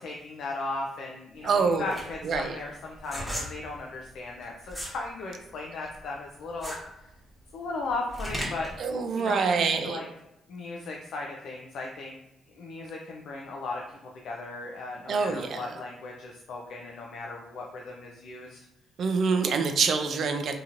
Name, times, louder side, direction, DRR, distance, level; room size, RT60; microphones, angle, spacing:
voice 1, 0.0-7.1 7.5-8.7 9.2-10.1 10.5-12.2 12.5-14.0 14.2-18.6, left 3 dB, 70° left, 0 dB, 0.4 m, -37 dB
sound 1, 1.4-5.0 5.4-8.8, equal, ahead, 1.1 m, -37 dB
voice 2, 1.4-1.8 2.2-2.6 8.8-10.0 15.1-15.6 19.0-20.5, right 5 dB, 60° right, 7 dB, 0.4 m, -26 dB
2.8 x 2.7 x 2.4 m, 0.90 s
cardioid pair, 90°, 0 cm